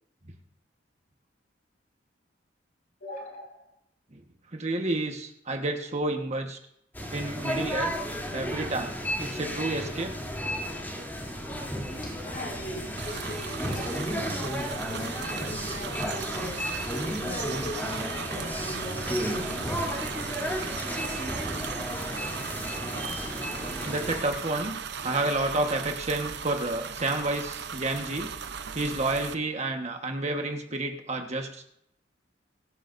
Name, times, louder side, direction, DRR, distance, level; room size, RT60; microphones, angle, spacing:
voice 1, 3.0-3.7 12.0-14.4 14.9-16.8 17.1-19.8, left 1 dB, 50° left, -1 dB, 5.5 m, -40 dB
voice 2, 4.5-6.6 7.1-7.9 8.3-10.1 15.4-15.7 23.9-24.8 25.0-28.3 28.7-31.6, right 2 dB, 40° right, 4 dB, 1.4 m, -30 dB
sound 1, 6.9-24.2, equal, 10° left, 3.1 m, -33 dB
sound 2, 13.0-29.3, right 7 dB, 65° right, 0.8 m, -37 dB
23.5 x 10.0 x 2.6 m, 0.75 s
head